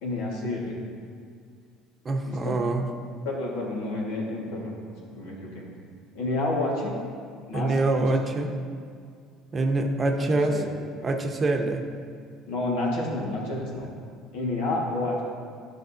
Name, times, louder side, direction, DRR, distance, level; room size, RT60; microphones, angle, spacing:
voice 1, 0.0-0.8 2.3-2.6 3.2-4.7 5.1-5.6 6.2-6.9 7.5-8.0 8.3-8.4 10.2-10.7 12.5-13.9 14.3-15.2, left 2 dB, 80° left, -3 dB, 1.8 m, -30 dB
voice 2, 2.0-2.9 7.5-8.5 9.5-10.6 11.0-11.8, right 2 dB, 30° right, 4 dB, 0.8 m, -25 dB
11.5 x 5.3 x 2.8 m, 2.2 s
supercardioid pair, 90°, 0 cm